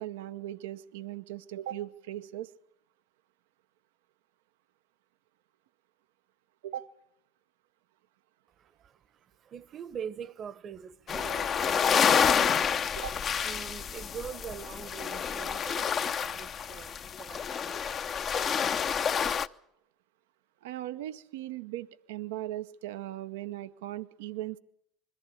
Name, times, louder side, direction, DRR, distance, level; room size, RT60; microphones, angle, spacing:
voice 1, 0.0-2.5 6.6-6.9 12.9-13.2 20.6-24.6, right 13 dB, 80° right, 0.7 m, -38 dB
voice 2, 8.6-13.0 13.4-19.1, right 7 dB, 45° right, 1.0 m, -44 dB
sound 1, 11.1-19.5, left 7 dB, 40° left, 0.8 m, -28 dB
21.5 x 15.0 x 8.4 m
hypercardioid pair, 85°, 0 cm